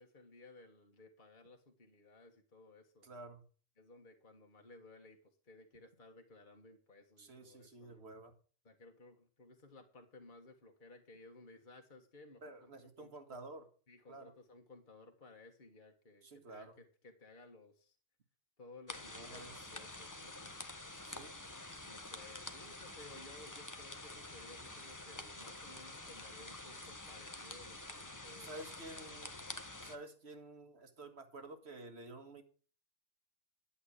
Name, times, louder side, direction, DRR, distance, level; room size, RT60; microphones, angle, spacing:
voice 1, 0.0-3.1 3.8-5.2 5.4-8.1 8.6-13.4 13.9-18.0 18.6-20.6 21.8-28.7 29.1-29.3 29.8-30.0, left 2 dB, 40° left, 3 dB, 1.8 m, -58 dB
voice 2, 3.0-3.4 7.2-8.3 12.4-13.7 14.1-14.3 16.2-16.8 19.1-19.5 21.0-21.4 28.4-29.4 29.8-32.4, right 2 dB, 55° right, 7 dB, 2.1 m, -51 dB
sound 1, 18.9-30.0, left 2 dB, 15° left, 1.1 m, -48 dB
11.5 x 8.7 x 5.0 m, 0.40 s
omnidirectional pair, 1.3 m